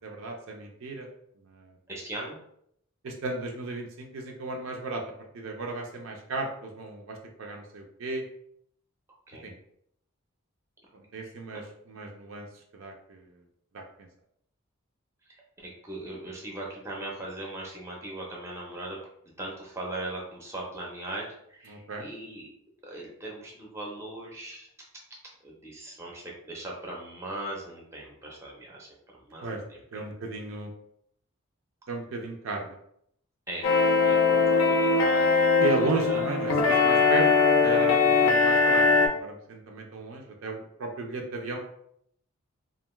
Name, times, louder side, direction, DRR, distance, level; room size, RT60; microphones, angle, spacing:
voice 1, 0.0-1.1 1.4-1.8 3.0-5.0 5.3-8.2 9.4-9.5 10.9-12.5 12.7-13.2 13.7-14.1 21.7-22.1 29.4-29.6 29.9-30.7 31.9-32.8 35.6-37.3 37.6-41.6, right 3 dB, 65° right, 2 dB, 0.4 m, -35 dB
voice 2, 1.9-2.4 9.3-9.6 11.2-11.3 15.3-19.0 19.4-22.5 22.8-24.7 25.4-30.0 33.5-33.7 34.0-34.2 34.5-35.4 36.0-36.4, right 1 dB, 10° right, -3 dB, 0.5 m, -39 dB
sound 1, 33.6-39.1, left 4 dB, 65° left, 0.5 m, -21 dB
2.4 x 2.2 x 3.0 m, 0.71 s
head